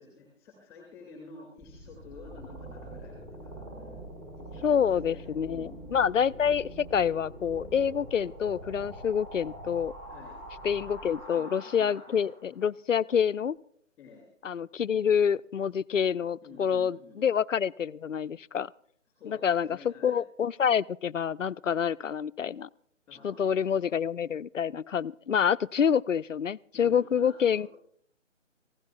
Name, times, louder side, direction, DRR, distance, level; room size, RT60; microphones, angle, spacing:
voice 1, 0.0-3.9 4.3-4.7 5.0-6.0 10.1-10.4 11.3-12.2 12.5-12.6 14.0-14.3 16.4-17.2 19.1-20.2 23.1-23.7 26.7-27.7, left 4 dB, 5° left, -1 dB, 2.5 m, -50 dB
sound 1, 1.6-12.5, right 1 dB, 20° right, 4.0 m, -44 dB
voice 2, 4.6-9.9 10.6-13.6 14.4-18.7 19.2-22.7 23.2-27.7, left 7 dB, 75° left, 17 dB, 0.5 m, -27 dB
26.5 x 16.0 x 2.5 m, 0.63 s
figure-of-eight pair, 145°, 38 cm